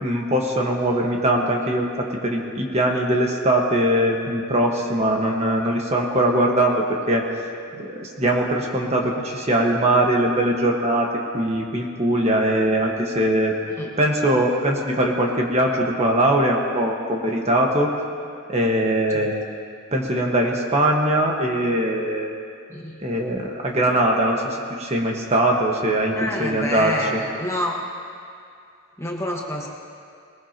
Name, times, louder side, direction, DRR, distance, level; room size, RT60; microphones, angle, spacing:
voice 1, 0.0-1.9 2.2-7.2 7.8-11.1 11.3-17.9 18.5-19.3 19.9-22.3 23.0-27.2, right 1 dB, 30° right, 0 dB, 1.4 m, -21 dB
voice 2, 26.1-27.8 29.0-29.7, left 1 dB, 15° left, -2 dB, 1.4 m, -28 dB
21.0 x 20.5 x 3.0 m, 2.4 s
head